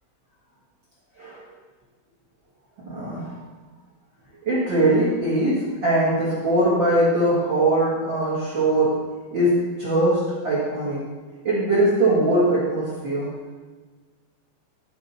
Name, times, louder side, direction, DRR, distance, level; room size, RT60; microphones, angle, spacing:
voice 1, 1.2-1.5 2.8-3.4 4.4-9.0 9.3-11.0 11.4-13.3, right 1 dB, 50° right, -8 dB, 1.4 m, -21 dB
12.5 x 4.6 x 4.2 m, 1.4 s
omnidirectional pair, 5.2 m